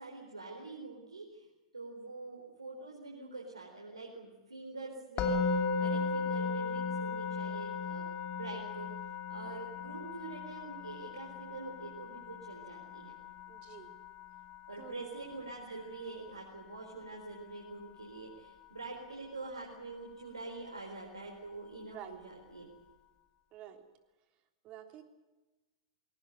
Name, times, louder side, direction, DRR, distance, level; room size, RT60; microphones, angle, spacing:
voice 1, 0.0-1.4 1.7-8.0 8.3-8.9 9.3-13.2 14.7-22.7, right 3 dB, 85° right, -1 dB, 4.4 m, -45 dB
Musical instrument, 5.2-16.3, left 4 dB, 35° left, 2.9 m, -37 dB
voice 2, 13.5-13.9 14.8-15.0 21.9-22.2 23.5-23.8 24.6-25.0, right 10 dB, 40° right, 6 dB, 3.4 m, -48 dB
22.5 x 18.5 x 9.4 m, 1.1 s
figure-of-eight pair, 95°, 3 cm